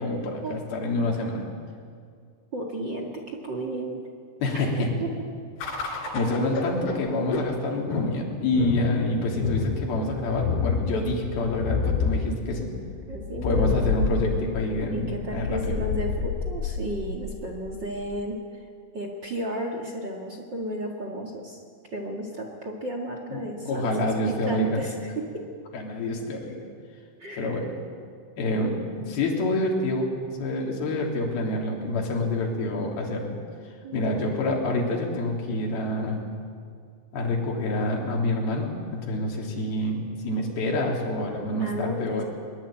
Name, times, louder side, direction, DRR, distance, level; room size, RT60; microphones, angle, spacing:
voice 1, 0.0-1.4 4.4-4.9 5.8-12.7 13.4-15.8 23.3-24.8 25.7-26.6 27.4-27.7 28.4-30.1 30.4-33.3 33.9-36.2 37.1-42.2, left 1 dB, 55° left, -1 dB, 5.1 m, -27 dB
voice 2, 2.5-4.0 4.5-4.6 5.0-5.1 13.1-13.9 14.9-18.7 18.9-21.6 21.9-25.5 27.2-27.7 33.8-34.4 41.6-42.2, right 1 dB, 65° right, 1 dB, 1.1 m, -33 dB
sound 1, 5.6-18.2, left 5 dB, 90° left, 5.4 m, -29 dB
22.5 x 21.5 x 9.0 m, 2.2 s
omnidirectional pair, 5.4 m